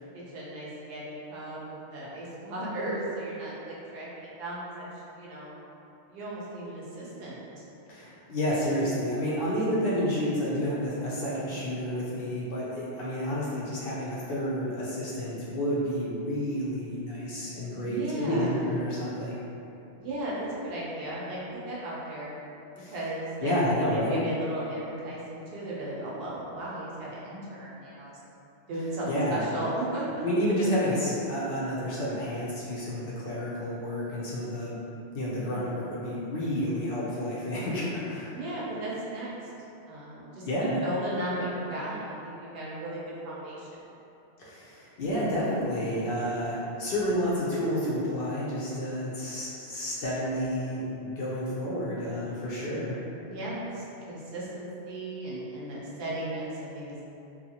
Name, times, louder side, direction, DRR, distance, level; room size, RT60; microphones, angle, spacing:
voice 1, 0.3-4.9 5.2-5.5 6.1-7.4 17.8-18.6 19.9-21.4 21.7-22.3 22.9-28.2 28.7-30.3 35.4-35.8 38.3-39.3 39.9-43.8 53.3-57.0, right 1 dB, 65° right, -6 dB, 0.8 m, -36 dB
voice 2, 7.9-19.4 22.8-23.0 23.4-24.2 29.1-29.5 30.2-34.8 35.1-38.4 40.4-40.8 44.4-52.9, equal, 60° left, -7 dB, 0.7 m, -30 dB
2.6 x 2.3 x 2.8 m, 2.9 s
omnidirectional pair, 1.2 m